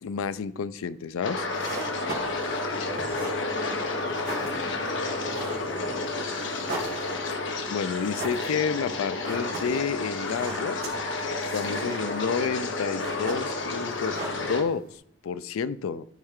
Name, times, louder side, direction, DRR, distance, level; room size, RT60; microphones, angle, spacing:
voice 1, 0.0-1.5 7.3-7.4 7.7-10.8 11.5-14.8 15.2-16.0, left 6 dB, 90° left, 16 dB, 0.4 m, -30 dB
sound 1, 1.2-14.6, left 2 dB, 65° left, 0.9 m, -31 dB
sound 2, 1.4-15.0, right 2 dB, 50° right, 2.1 m, -41 dB
voice 2, 2.5-7.0, equal, 45° left, -3 dB, 2.5 m, -47 dB
13.0 x 4.4 x 3.6 m, 0.70 s
head